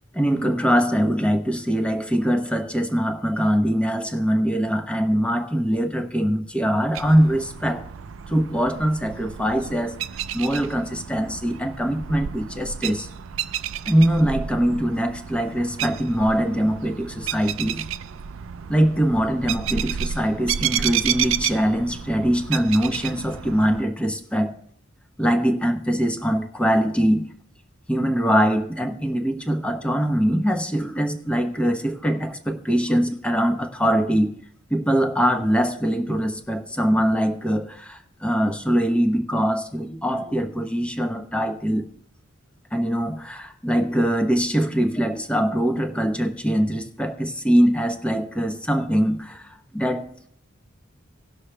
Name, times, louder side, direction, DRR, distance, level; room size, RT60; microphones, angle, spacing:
voice 1, 0.1-7.8 8.3-9.9 10.3-13.1 13.9-17.9 18.7-24.6 25.2-27.3 27.9-34.3 34.7-41.9 42.7-50.3, equal, 5° left, 5 dB, 0.9 m, -22 dB
sound 1, 6.9-23.8, right 9 dB, 85° right, 0.4 m, -31 dB
18.0 x 6.3 x 3.3 m, 0.66 s
head